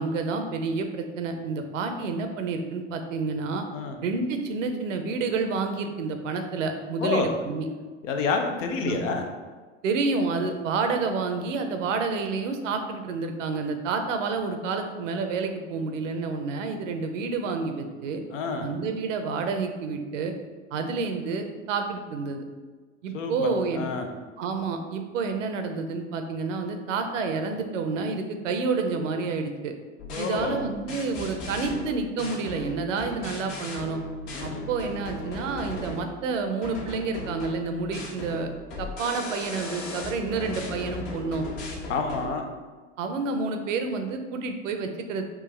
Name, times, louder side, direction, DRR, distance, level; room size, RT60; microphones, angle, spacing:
voice 1, 0.0-3.6 4.0-7.7 8.8-9.0 9.8-18.2 18.6-20.3 20.7-22.4 23.0-23.9 24.4-29.7 30.2-34.0 34.4-38.5 38.8-41.5 43.0-45.2, right 4 dB, 80° right, 6 dB, 0.6 m, -29 dB
voice 2, 8.0-9.2 18.3-18.7 23.1-24.1 30.1-30.5 34.3-34.7 41.9-42.5, left 4 dB, 75° left, 4 dB, 0.7 m, -28 dB
sound 1, 30.0-36.2 36.6-42.3, left 2 dB, 55° left, 1.2 m, -37 dB
4.6 x 2.4 x 3.3 m, 1.4 s
hypercardioid pair, 90°, 38 cm